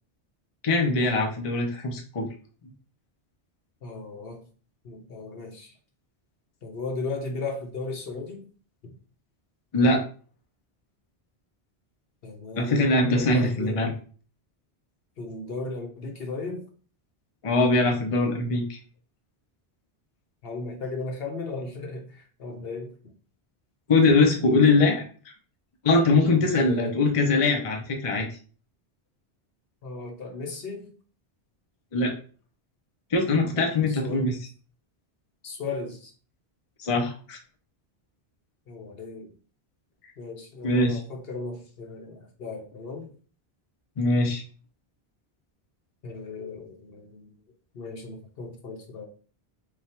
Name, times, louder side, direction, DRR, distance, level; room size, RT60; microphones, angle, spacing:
voice 1, 0.6-2.3 9.7-10.0 12.6-13.9 17.4-18.8 23.9-25.0 25.8-28.3 31.9-32.1 33.1-34.3 36.8-37.4 40.6-41.0 44.0-44.4, left 2 dB, 40° left, 2 dB, 0.6 m, -22 dB
voice 2, 3.8-4.4 4.8-5.7 6.6-8.4 8.8-8.9 12.2-13.8 15.2-16.6 20.4-22.9 26.5-27.1 29.8-30.9 33.9-34.2 35.4-36.1 38.7-39.3 40.2-43.1 46.0-47.3 47.7-49.1, left 3 dB, 65° left, 2 dB, 1.1 m, -36 dB
3.3 x 2.4 x 4.2 m, 0.40 s
omnidirectional pair, 1.1 m